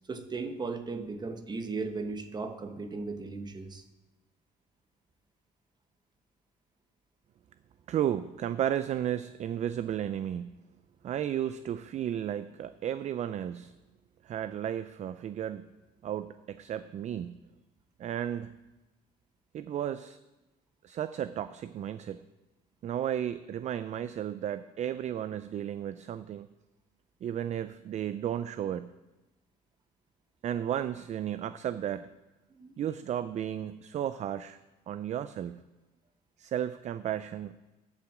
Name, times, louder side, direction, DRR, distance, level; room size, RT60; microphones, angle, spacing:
voice 1, 0.1-3.8 32.5-32.7, right 4 dB, 25° right, 7 dB, 1.1 m, -36 dB
voice 2, 7.9-10.6 11.0-13.7 14.2-15.7 16.0-17.4 18.0-18.5 19.5-20.2 20.8-22.2 22.8-26.5 27.2-28.9 30.4-32.1 32.8-34.6 34.9-35.6 36.4-37.6, right 10 dB, 45° right, 13 dB, 0.4 m, -33 dB
11.5 x 5.9 x 7.4 m, 1.1 s
cardioid pair, 110°, 17 cm